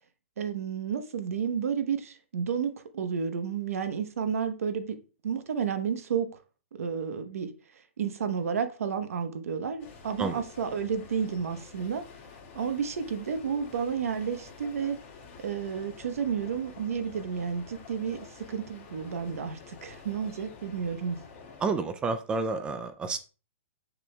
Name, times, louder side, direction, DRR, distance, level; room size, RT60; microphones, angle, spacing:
voice 1, 0.4-6.4 6.7-7.5 8.0-12.1 12.5-15.0 15.4-21.2, right 7 dB, 80° right, 1.0 m, -31 dB
sound 1, 9.8-21.7, left 5 dB, 35° left, 2.0 m, -49 dB
voice 2, 21.6-23.2, right 4 dB, 10° right, 0.4 m, -30 dB
6.8 x 6.0 x 2.3 m
hypercardioid pair, 155°, 8 cm